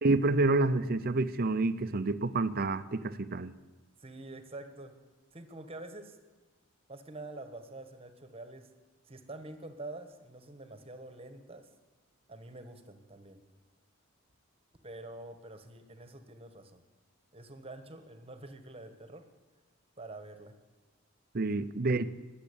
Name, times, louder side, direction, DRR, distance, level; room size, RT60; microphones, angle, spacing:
voice 1, 0.0-3.5 21.3-22.1, right 2 dB, 45° right, 0.6 m, -28 dB
voice 2, 4.0-4.9 5.3-6.2 6.9-8.7 9.1-11.7 12.3-13.4 14.8-16.8 17.3-19.2 20.0-20.6 21.8-22.0, right 2 dB, 30° right, 1.3 m, -46 dB
20.5 x 7.4 x 8.5 m
head